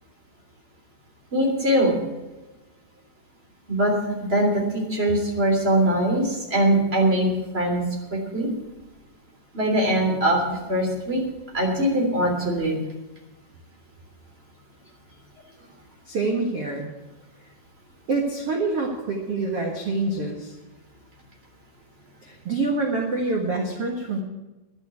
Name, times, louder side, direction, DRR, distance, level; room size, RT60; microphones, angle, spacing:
voice 1, 1.3-1.9 3.7-3.9 4.3-7.3 7.5-7.8 8.3-8.5 9.5-10.4 10.7-11.2 11.5-12.8, right 1 dB, 15° right, 0 dB, 3.1 m, -21 dB
voice 2, 16.1-16.8 18.1-20.5 22.2-24.2, right 3 dB, 55° right, 1 dB, 1.7 m, -26 dB
11.0 x 8.9 x 9.5 m, 1.1 s
omnidirectional pair, 4.9 m